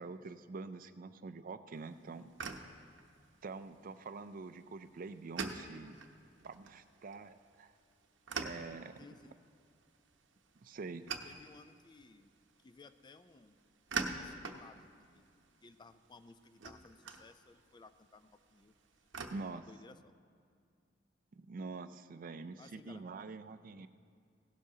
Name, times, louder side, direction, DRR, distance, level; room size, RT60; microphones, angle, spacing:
voice 1, 0.0-2.3 3.4-6.0 6.4-7.7 8.4-9.0 10.6-11.1 19.3-19.6 21.3-23.9, right 4 dB, 50° right, 12 dB, 0.4 m, -46 dB
sound 1, 1.8-19.3, right 4 dB, 90° right, 0.8 m, -47 dB
voice 2, 9.0-9.4 11.2-12.3 12.6-13.6 14.1-15.2 15.6-18.7 19.3-20.1 22.6-23.1, left 3 dB, 25° left, 11 dB, 0.4 m, -58 dB
16.5 x 12.0 x 2.8 m, 2.3 s
head